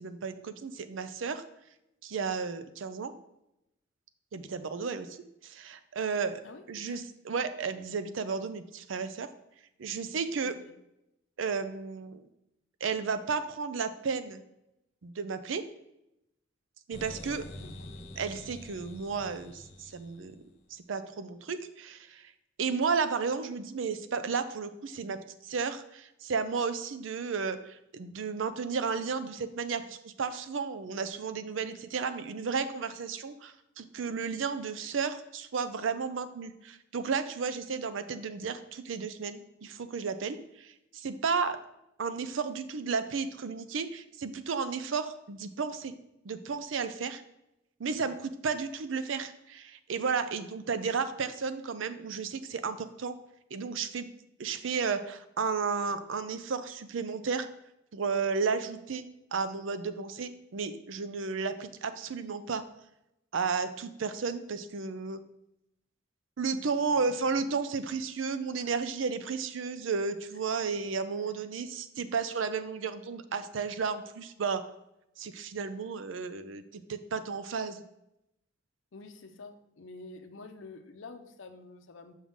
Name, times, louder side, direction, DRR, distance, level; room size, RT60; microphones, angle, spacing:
voice 1, 0.0-1.4 2.0-3.1 4.3-5.2 5.4-6.4 6.7-9.3 9.8-10.5 11.4-12.3 12.8-14.4 15.0-15.6 16.9-17.4 18.2-20.3 20.7-22.3 22.6-41.6 42.0-45.9 46.2-47.2 47.8-53.1 53.5-54.1 54.4-57.5 57.9-59.0 59.3-62.6 63.3-65.2 66.4-74.6 75.2-77.8, right 5 dB, 70° right, 11 dB, 0.5 m, -33 dB
voice 2, 6.4-7.0 10.4-10.7 17.6-17.9 47.9-48.2 66.8-66.9 67.3-67.4 68.6-68.7 71.3-71.4 78.9-82.1, left 3 dB, 70° left, 7 dB, 0.6 m, -48 dB
sound 1, 16.9-20.7, left 1 dB, 35° left, 0.9 m, -46 dB
6.2 x 5.5 x 3.6 m, 0.85 s
head